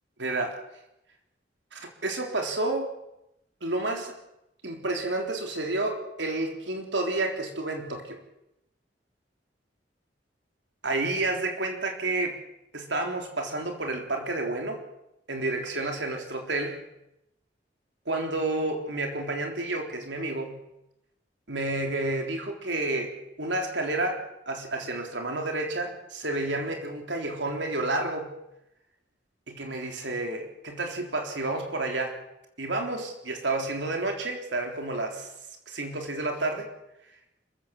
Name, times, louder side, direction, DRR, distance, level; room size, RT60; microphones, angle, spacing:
voice 1, 0.2-0.6 1.7-2.9 3.6-4.1 4.6-8.2 10.8-12.4 12.7-14.8 15.3-16.8 18.1-20.6 21.5-28.4 29.5-32.2 32.6-35.3 35.7-36.7, right 2 dB, 90° right, 3 dB, 3.8 m, -30 dB
30.0 x 14.5 x 7.4 m, 0.86 s
head